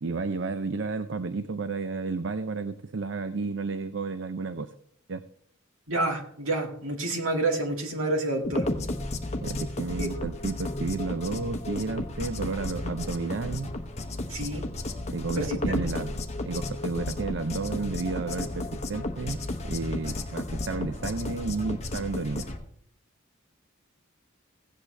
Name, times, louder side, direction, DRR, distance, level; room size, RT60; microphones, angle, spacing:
voice 1, 0.0-4.7 5.1-5.2 9.4-13.7 15.1-16.2 16.5-22.5, right 3 dB, 60° right, 11 dB, 0.5 m, -32 dB
voice 2, 5.9-8.7 9.9-10.1 14.3-14.7 15.4-15.6, right 2 dB, 85° right, 2 dB, 2.1 m, -28 dB
night club beat by kris sample, 8.4-22.6, left 2 dB, 30° left, 1.0 m, -33 dB
16.5 x 8.2 x 3.3 m, 0.65 s
head